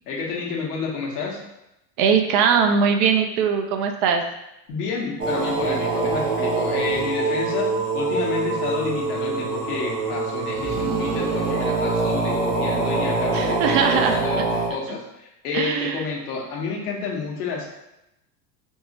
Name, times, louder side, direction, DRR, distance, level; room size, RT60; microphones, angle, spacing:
voice 1, 0.0-1.4 4.7-7.7 7.9-17.6, left 4 dB, 85° left, -2 dB, 0.9 m, -30 dB
voice 2, 2.0-4.2 13.3-14.2 15.5-16.1, right 6 dB, 60° right, 5 dB, 0.5 m, -20 dB
sound 1, 5.2-14.7, right 3 dB, 40° right, 0.9 m, -24 dB
3.6 x 2.0 x 2.7 m, 0.88 s
hypercardioid pair, 90°, 45 cm